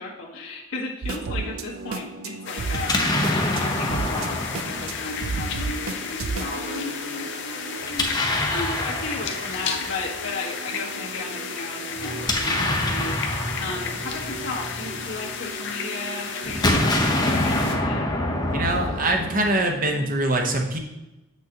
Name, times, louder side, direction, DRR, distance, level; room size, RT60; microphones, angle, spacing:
voice 1, 0.0-18.1, left 3 dB, 85° left, -4 dB, 1.6 m, -35 dB
sound 1, 1.0-20.1, right 4 dB, 85° right, 0.5 m, -36 dB
sound 2, 2.5-17.8, left 6 dB, 60° left, 0.7 m, -33 dB
Explosion, 2.7-5.8 7.8-10.1 12.0-15.4 16.4-19.8, left 1 dB, 20° left, 0.8 m, -26 dB
voice 2, 18.5-20.8, right 1 dB, 40° right, 2 dB, 1.0 m, -23 dB
7.5 x 6.1 x 2.9 m, 0.99 s
head